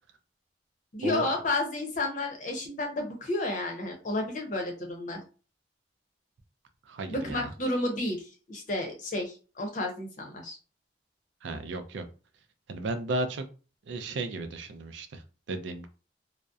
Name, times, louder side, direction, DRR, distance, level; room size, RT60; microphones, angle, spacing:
voice 1, 0.9-5.2 7.1-10.6, left 2 dB, 45° left, 2 dB, 0.6 m, -31 dB
voice 2, 6.9-7.5 11.4-12.0 12.7-13.5 13.9-15.2 15.5-15.9, right 2 dB, 80° right, 8 dB, 0.4 m, -34 dB
2.6 x 2.0 x 2.3 m, 0.35 s
head